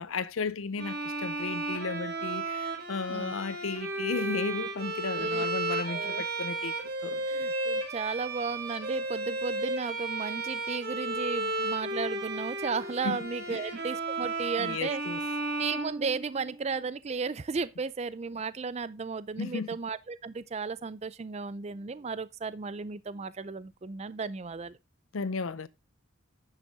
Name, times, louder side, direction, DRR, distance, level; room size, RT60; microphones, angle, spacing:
voice 1, 0.0-6.7 7.0-7.2 13.0-13.2 13.5-13.6 14.6-15.2 19.4-19.8 25.1-25.7, left 4 dB, 90° left, 0.7 m, -34 dB
Bowed string instrument, 0.8-16.6, right 2 dB, 50° right, 2.6 m, -34 dB
voice 2, 5.9-6.2 7.3-15.0 15.6-24.8, right 4 dB, 30° right, 0.4 m, -34 dB
10.0 x 6.5 x 3.5 m
head